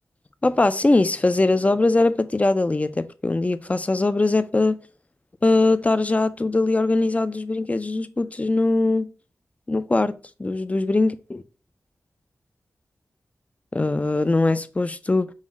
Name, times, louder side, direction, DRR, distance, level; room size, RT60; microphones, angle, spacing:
voice 1, 0.4-4.8 5.4-9.1 9.7-10.1 10.4-11.4 13.7-15.3, left 2 dB, 25° left, 0.4 m, -21 dB
5.5 x 2.1 x 4.6 m
cardioid pair, 60°, 6 cm